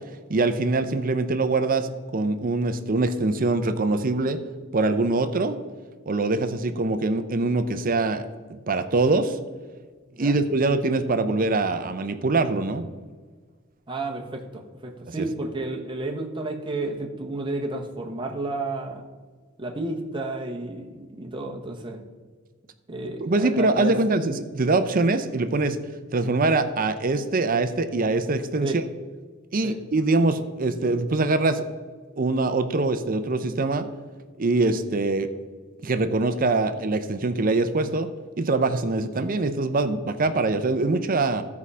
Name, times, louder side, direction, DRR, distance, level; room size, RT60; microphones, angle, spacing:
voice 1, 0.3-4.4 4.7-5.6 6.1-9.4 10.2-12.9 15.1-15.3 23.0-25.8 26.1-28.7 29.5-31.6 32.2-33.9 34.4-35.3 35.8-41.4, right 3 dB, 45° right, 10 dB, 0.6 m, -23 dB
voice 2, 13.9-19.1 19.6-22.0 22.9-23.9 28.6-28.8 29.6-29.8, right 2 dB, 25° right, 1 dB, 1.1 m, -31 dB
14.0 x 4.8 x 5.5 m, 1.4 s
head